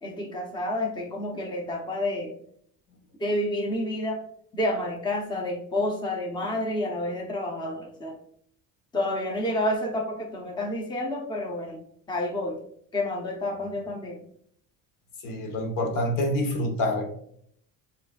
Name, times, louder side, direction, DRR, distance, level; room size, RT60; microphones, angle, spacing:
voice 1, 0.0-2.3 3.2-4.2 4.5-8.1 8.9-11.8 12.1-12.6 12.9-14.2, left 1 dB, 15° left, 0 dB, 0.7 m, -29 dB
voice 2, 15.2-17.1, left 1 dB, 70° left, 4 dB, 1.1 m, -27 dB
6.9 x 2.6 x 2.3 m, 0.66 s
cardioid pair, 145°, 34 cm